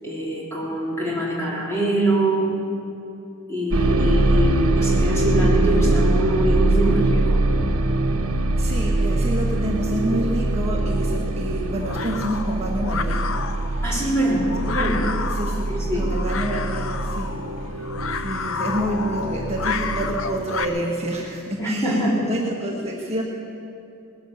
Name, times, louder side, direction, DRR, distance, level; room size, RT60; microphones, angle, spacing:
voice 1, 0.0-2.6 3.5-7.4 13.8-15.1 15.7-16.1 21.6-22.3, right 1 dB, 15° left, -6 dB, 3.6 m, -24 dB
sound 1, 3.7-20.7, right 2 dB, 85° right, 0.9 m, -23 dB
voice 2, 8.6-13.3 13.5-13.8 14.4-14.7 15.3-17.7 18.1-23.2, equal, 30° right, -3 dB, 1.5 m, -28 dB
sound 2, 10.8-20.6, left 5 dB, 65° left, 0.7 m, -31 dB
19.5 x 10.5 x 6.9 m, 2.7 s
head